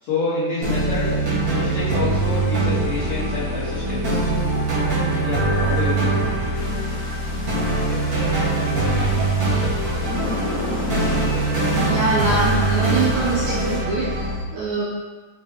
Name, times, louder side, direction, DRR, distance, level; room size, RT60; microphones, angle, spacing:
voice 1, 0.0-1.2 1.5-4.2 5.2-6.2, left 3 dB, 85° left, -11 dB, 1.2 m, -27 dB
sound 1, 0.6-14.3, right 2 dB, 65° right, 0.9 m, -22 dB
sound 2, 6.5-13.8, equal, 60° left, 1.2 m, -33 dB
voice 2, 11.9-14.9, right 3 dB, 85° right, -5 dB, 1.7 m, -23 dB
6.4 x 2.2 x 3.4 m, 1.4 s
omnidirectional pair, 4.0 m